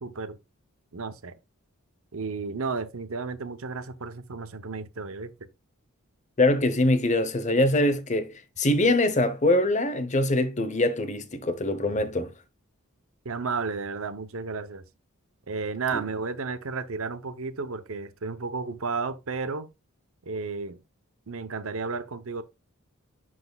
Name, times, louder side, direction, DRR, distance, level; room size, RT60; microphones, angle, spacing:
voice 1, 0.0-0.4 0.9-1.3 2.1-5.3 13.2-14.8 15.5-19.7 20.2-20.8 21.3-22.4, right 4 dB, 70° right, 0.7 m, -33 dB
voice 2, 6.4-12.3, left 1 dB, 35° left, 0.8 m, -23 dB
11.0 x 4.1 x 2.3 m
head